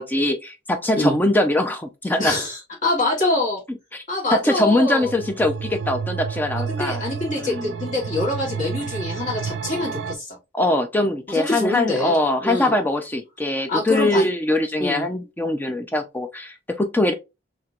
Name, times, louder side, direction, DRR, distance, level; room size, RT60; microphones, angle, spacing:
voice 1, 0.0-2.4 3.9-4.0 4.3-7.0 7.4-7.7 10.5-17.1, left 1 dB, 10° left, 0.4 m, -22 dB
voice 2, 2.2-3.6 4.1-5.1 6.7-10.4 11.3-12.7 13.7-14.3 14.8-15.0, left 2 dB, 40° left, 1.9 m, -25 dB
sound 1, 5.0-10.1, right 6 dB, 65° right, 0.3 m, -30 dB
3.2 x 2.9 x 2.4 m
head